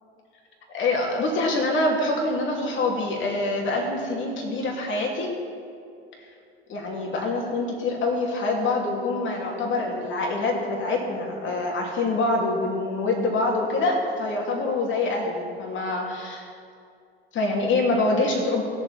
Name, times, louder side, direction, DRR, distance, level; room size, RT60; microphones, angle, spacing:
voice 1, 0.7-5.3 6.7-16.5 17.3-18.6, left 2 dB, 40° left, -1 dB, 2.7 m, -25 dB
19.5 x 7.1 x 4.4 m, 2.4 s
figure-of-eight pair, 70°, 31 cm